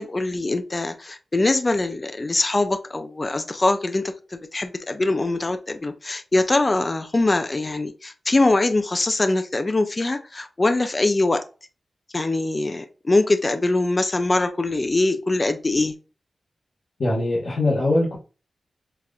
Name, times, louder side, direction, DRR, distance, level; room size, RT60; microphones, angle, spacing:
voice 1, 0.0-11.4 12.1-15.9, left 2 dB, 25° left, 8 dB, 0.4 m, -23 dB
voice 2, 17.0-18.2, left 2 dB, 55° left, -6 dB, 1.1 m, -21 dB
5.7 x 2.5 x 2.2 m, 0.34 s
wide cardioid pair, 150°, 0 cm